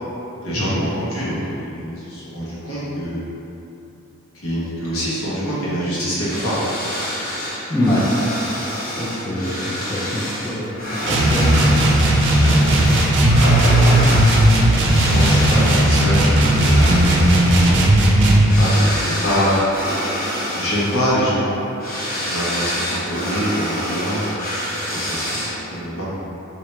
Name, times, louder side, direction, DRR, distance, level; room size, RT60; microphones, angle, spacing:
voice 1, 0.4-3.2 4.4-6.6 12.4-12.8 13.4-14.5 15.0-16.3 16.6-17.0 18.0-19.5 20.1-20.2 20.5-21.6 22.0-24.3 24.7-25.4 25.7-26.1, equal, 85° left, -8 dB, 1.2 m, -25 dB
sound 1, 6.2-25.8, equal, 40° left, 1.0 m, -27 dB
voice 2, 7.7-8.1 8.9-11.8, left 1 dB, 15° left, -6 dB, 0.4 m, -24 dB
sound 2, 11.0-18.6, right 1 dB, 55° right, 0.5 m, -15 dB
4.5 x 2.8 x 3.2 m, 2.9 s
head